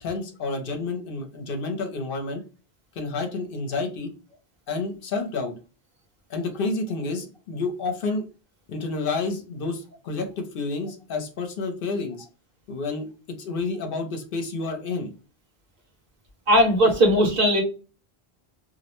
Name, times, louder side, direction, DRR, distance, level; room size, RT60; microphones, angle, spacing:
voice 1, 0.0-2.4 2.9-4.1 4.7-5.5 6.3-8.2 8.7-12.3 12.7-13.1 13.4-15.1, left 3 dB, 65° left, 4 dB, 0.8 m, -29 dB
voice 2, 16.5-17.6, equal, 65° right, 2 dB, 1.0 m, -18 dB
2.4 x 2.0 x 2.9 m, 0.34 s
omnidirectional pair, 1.0 m